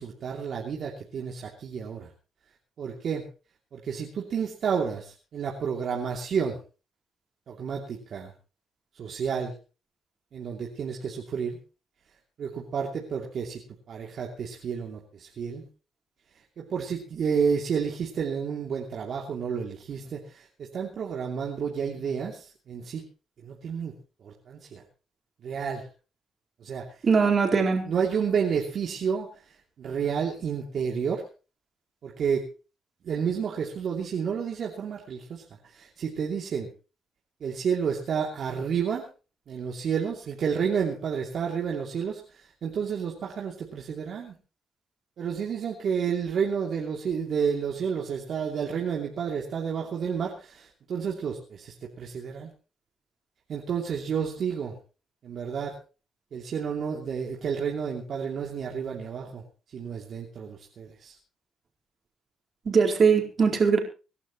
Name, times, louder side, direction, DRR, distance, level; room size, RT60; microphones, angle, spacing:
voice 1, 0.0-2.1 2.8-3.3 3.7-6.6 7.5-8.3 9.0-9.5 10.3-11.6 12.4-13.6 13.9-15.7 16.6-23.1 23.4-24.0 24.2-24.8 25.4-25.9 26.6-26.9 27.8-29.3 29.8-31.2 32.0-32.4 33.0-36.7 37.4-39.0 39.5-44.3 45.2-52.5 53.5-54.8 55.2-55.8 56.3-59.4 59.7-61.2, right 6 dB, 60° right, -1 dB, 2.8 m, -30 dB
voice 2, 27.0-27.8 62.7-63.8, right 5 dB, 45° right, 1 dB, 4.3 m, -21 dB
26.0 x 12.0 x 3.1 m, 0.34 s
cardioid pair, 90°, 0 cm